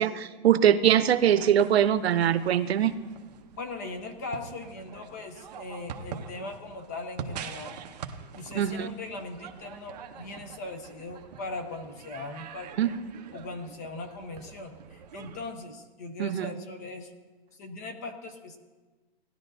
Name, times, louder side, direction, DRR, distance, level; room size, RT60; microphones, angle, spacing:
voice 1, 0.0-2.9 8.5-8.9 12.8-13.0 16.2-16.5, right 10 dB, 85° right, 13 dB, 0.8 m, -22 dB
sound 1, 0.9-15.4, right 7 dB, 40° right, 0.8 m, -45 dB
voice 2, 3.6-7.8 8.3-12.7 13.3-17.1 17.5-18.6, left 3 dB, 20° left, 7 dB, 0.5 m, -39 dB
18.5 x 11.0 x 2.6 m, 1.3 s
hypercardioid pair, 175°, 30 cm